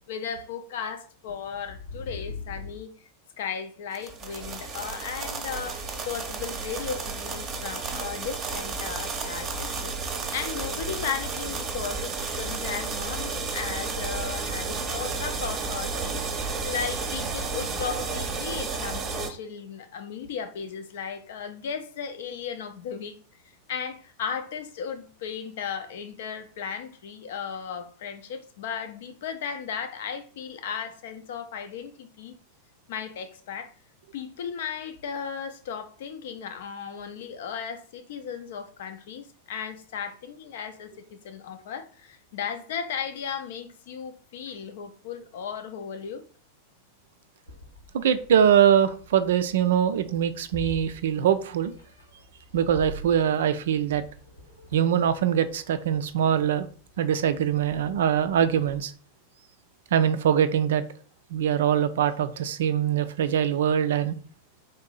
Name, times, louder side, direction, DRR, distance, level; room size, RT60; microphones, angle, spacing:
voice 1, 0.1-3.1 3.4-23.2 23.7-32.3 32.9-33.7 34.1-46.2, left 7 dB, 55° left, 0.5 m, -35 dB
sound 1, 3.9-19.3, right 4 dB, 25° right, 0.7 m, -32 dB
Meow, 47.5-58.8, equal, 90° left, 1.2 m, -46 dB
voice 2, 47.9-51.7 52.5-54.0 54.7-56.7 57.0-58.9 59.9-60.8 61.3-64.2, right 9 dB, 60° right, 0.3 m, -23 dB
3.7 x 2.7 x 3.8 m
figure-of-eight pair, 90°, 0 cm